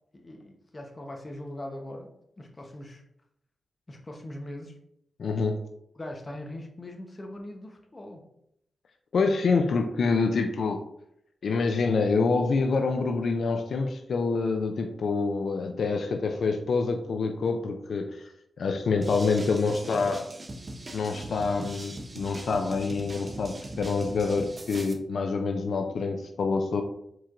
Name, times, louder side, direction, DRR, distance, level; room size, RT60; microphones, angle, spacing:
voice 1, 0.1-2.1 2.4-3.0 3.9-4.8 5.9-8.3, left 1 dB, 30° left, 2 dB, 0.8 m, -41 dB
voice 2, 5.2-5.6 9.1-10.8 11.4-18.2 18.6-20.3 20.9-26.8, left 4 dB, 75° left, 5 dB, 0.4 m, -26 dB
sound 1, 19.0-24.9, right 1 dB, 35° right, 0.7 m, -41 dB
4.6 x 4.4 x 2.5 m, 0.75 s
cardioid pair, 80°, 0 cm